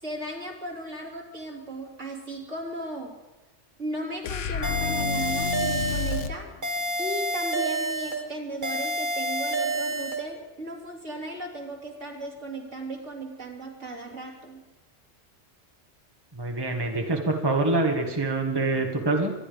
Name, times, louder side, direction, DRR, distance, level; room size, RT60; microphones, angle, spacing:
voice 1, 0.0-3.1 3.8-6.5 7.0-14.6, right 1 dB, 75° right, -1 dB, 3.5 m, -36 dB
sound 1, 4.2-6.4, left 6 dB, 75° left, 1.1 m, -30 dB
sound 2, 4.6-6.2 6.6-8.2 8.6-10.2, right 1 dB, 40° right, 2.6 m, -28 dB
voice 2, 16.3-19.3, right 2 dB, 20° right, 2 dB, 1.6 m, -25 dB
24.5 x 11.5 x 5.2 m, 1.1 s
omnidirectional pair, 1.3 m